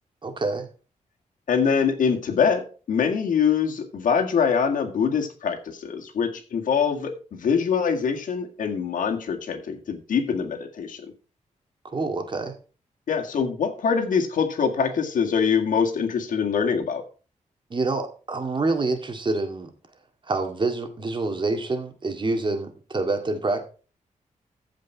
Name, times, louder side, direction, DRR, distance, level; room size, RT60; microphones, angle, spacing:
voice 1, 0.2-0.7 11.8-12.5 17.7-19.7 20.3-23.7, right 3 dB, 35° right, 2.1 m, -27 dB
voice 2, 1.5-11.1 13.1-17.0, left 6 dB, 85° left, 1.9 m, -24 dB
14.5 x 5.2 x 4.6 m
wide cardioid pair, 100°, 13 cm